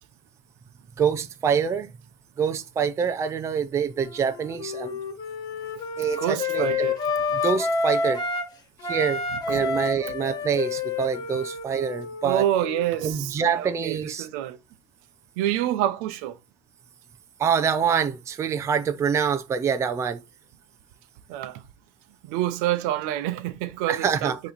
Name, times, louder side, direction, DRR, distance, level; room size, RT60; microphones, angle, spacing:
voice 1, 1.0-1.9 2.4-5.0 6.0-6.9 7.3-8.2 8.9-9.2 9.5-12.5 13.0-14.3 17.4-20.2 23.9-24.5, right 7 dB, 20° right, 0.5 m, -25 dB
Wind instrument woodwind instrument, 4.0-8.5 8.8-13.3, left 4 dB, 25° left, 1.5 m, -29 dB
voice 2, 6.2-7.0 9.5-9.7 12.2-14.6 15.4-16.4 21.3-21.6 22.2-24.5, right 13 dB, 65° right, 0.8 m, -27 dB
9.0 x 3.1 x 4.0 m
cardioid pair, 160°, 15 cm